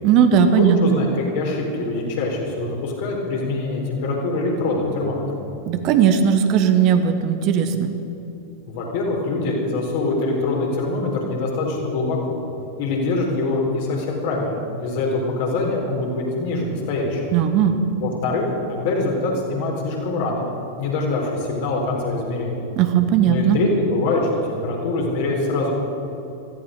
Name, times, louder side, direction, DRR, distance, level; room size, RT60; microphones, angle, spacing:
voice 1, 0.0-1.0 5.7-7.9 17.3-17.8 22.8-23.6, right 8 dB, 40° right, 8 dB, 1.1 m, -17 dB
voice 2, 0.6-5.2 8.7-12.4 12.8-17.2 18.0-20.4 20.8-22.6 23.2-25.7, left 2 dB, 50° left, -1 dB, 4.0 m, -24 dB
16.5 x 14.5 x 5.3 m, 2.9 s
figure-of-eight pair, 90°, 0 cm